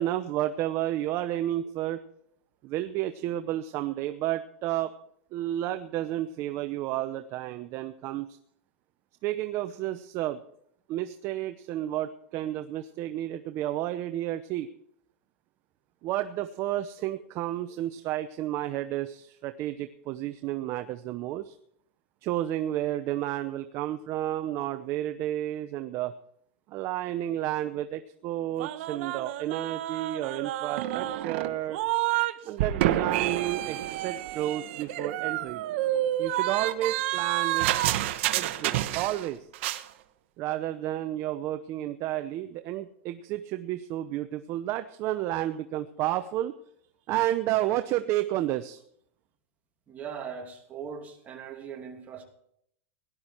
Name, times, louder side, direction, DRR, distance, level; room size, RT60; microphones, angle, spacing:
voice 1, 0.0-2.0 2.6-4.9 5.3-8.4 9.2-10.4 10.9-14.7 16.0-21.6 22.2-26.1 26.7-31.8 32.4-35.7 36.2-37.7 38.3-39.5 40.4-46.5 47.1-48.8, right 13 dB, 40° right, 10 dB, 0.8 m, -31 dB
sound 1, 28.6-32.3 32.6-39.3 39.5-39.8, right 14 dB, 65° right, 1.2 m, -29 dB
voice 2, 49.9-52.2, right 7 dB, 20° right, 2 dB, 2.8 m, -40 dB
17.5 x 11.5 x 4.5 m, 0.69 s
supercardioid pair, 145°, 7 cm